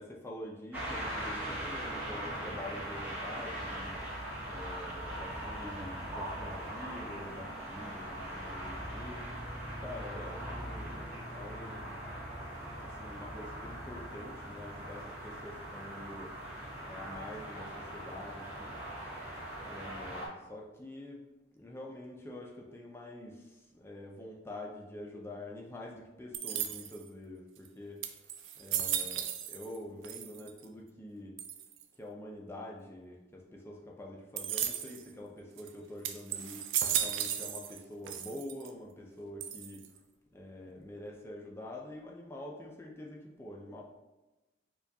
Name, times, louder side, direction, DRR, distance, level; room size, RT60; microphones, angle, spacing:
voice 1, 0.0-4.0 4.4-9.3 9.6-12.0 12.8-16.4 16.8-19.3 19.6-21.2 21.5-28.0 28.6-31.4 32.0-39.8 40.3-43.8, left 1 dB, 15° left, -1 dB, 0.3 m, -46 dB
sound 1, 0.7-20.3, right 1 dB, 10° right, 0.8 m, -41 dB
sound 2, 26.3-27.1 27.7-27.8 28.0-29.8 30.0-30.7 31.4-31.8 34.4-35.0 35.6-35.7 36.0-37.8 38.1-38.7 39.4-40.0, right 9 dB, 85° right, 0.3 m, -35 dB
4.5 x 2.3 x 2.6 m, 1.1 s
head